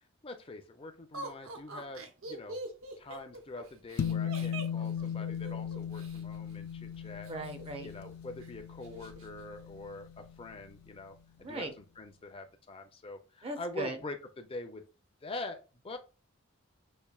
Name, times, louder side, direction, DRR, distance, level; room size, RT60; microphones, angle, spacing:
voice 1, 0.2-2.6 3.0-7.3 7.8-14.8 15.2-16.0, left 2 dB, 25° left, 6 dB, 0.5 m, -44 dB
Laughter, 1.1-6.2 7.2-8.1 8.4-8.5 8.8-9.3, right 2 dB, 80° right, 0.8 m, -44 dB
sound 1, 4.0-10.6, left 8 dB, 80° left, 0.4 m, -37 dB
voice 2, 7.2-7.9 11.4-11.7 13.4-14.0, right 1 dB, 25° right, 6 dB, 0.5 m, -38 dB
5.4 x 2.6 x 2.3 m, 0.33 s
head